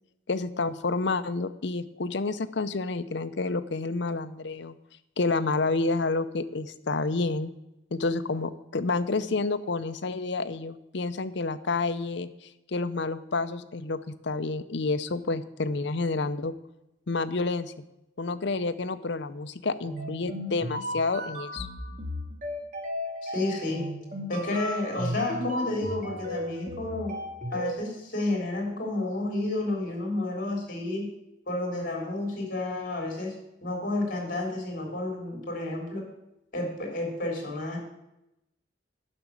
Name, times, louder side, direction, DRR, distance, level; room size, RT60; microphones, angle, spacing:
voice 1, 0.3-4.8 5.2-7.5 7.9-12.3 12.7-16.5 17.1-17.7 18.2-21.7, left 3 dB, 65° left, 11 dB, 0.7 m, -29 dB
sound 1, 19.8-27.7, equal, 45° right, 2.0 m, -35 dB
voice 2, 23.2-23.8 24.3-27.1 27.5-31.0 31.5-33.3 33.6-36.0 36.5-37.8, left 2 dB, 45° left, 1 dB, 3.7 m, -31 dB
11.0 x 6.1 x 8.1 m, 0.89 s
head